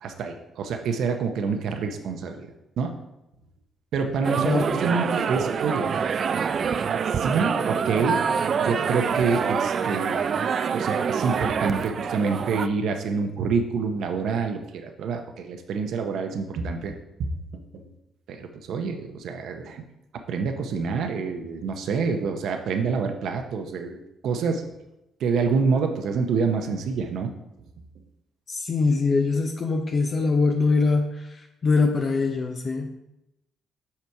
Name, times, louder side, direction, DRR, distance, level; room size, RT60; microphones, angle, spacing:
voice 1, 0.0-2.5 2.8-2.9 3.9-5.9 7.1-8.2 8.6-10.2 10.7-16.9 17.2-17.8 18.3-19.8 20.3-24.6 25.2-27.3, right 5 dB, 75° right, 5 dB, 0.7 m, -27 dB
sound 1, 4.2-12.7, right 6 dB, 55° right, 0.4 m, -26 dB
voice 2, 28.5-33.0, left 4 dB, 45° left, 3 dB, 0.7 m, -23 dB
5.8 x 5.8 x 4.6 m, 0.91 s
cardioid pair, 90°, 0 cm